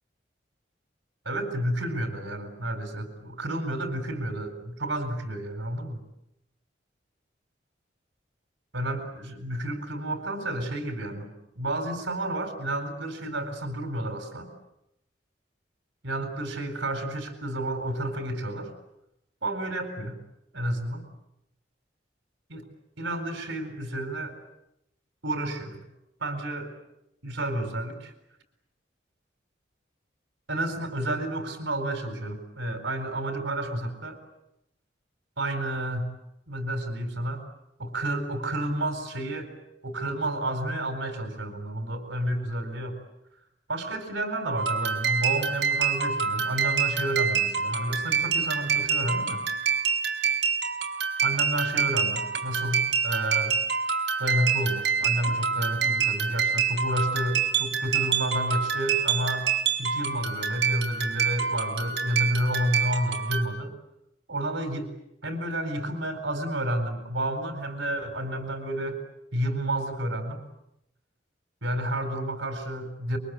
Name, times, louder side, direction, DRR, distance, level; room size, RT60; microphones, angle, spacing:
voice 1, 1.2-6.0 8.7-11.3 11.6-14.5 16.0-18.7 19.4-20.2 20.5-21.0 22.5-22.6 23.0-24.4 25.2-25.8 26.2-26.7 27.2-28.1 30.5-34.2 35.4-36.1 36.5-37.4 37.8-39.5 39.8-43.0 43.7-49.4 51.2-53.6 54.2-59.5 59.8-63.7 64.3-64.9 65.2-69.0 69.3-70.4 71.6-73.2, right 1 dB, 85° right, 7 dB, 4.4 m, -30 dB
sound 1, 44.6-63.4, right 6 dB, 65° right, 5.3 m, -27 dB
28.0 x 24.0 x 8.2 m, 0.86 s
head